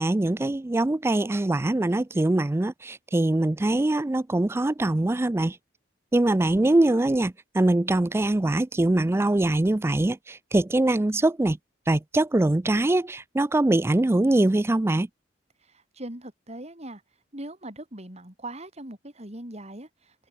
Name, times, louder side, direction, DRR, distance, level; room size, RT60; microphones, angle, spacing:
voice 1, 0.0-5.6 6.1-11.6 11.9-15.1, right 2 dB, 15° right, 0.3 m, -23 dB
voice 2, 15.6-17.0 17.3-20.3, right 1 dB, 35° right, 4.8 m, -40 dB
open air
head